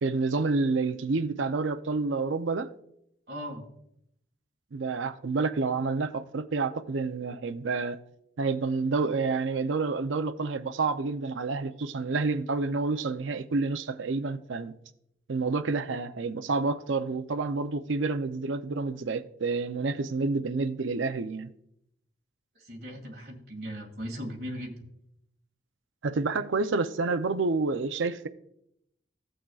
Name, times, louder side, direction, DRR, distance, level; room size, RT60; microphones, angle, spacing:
voice 1, 0.0-2.7 4.7-8.0 8.4-14.8 15.3-21.5 26.0-28.3, right 3 dB, 85° right, 0.6 m, -29 dB
voice 2, 3.3-3.6 22.6-24.8, equal, 55° right, 2.0 m, -38 dB
16.0 x 6.4 x 2.3 m
head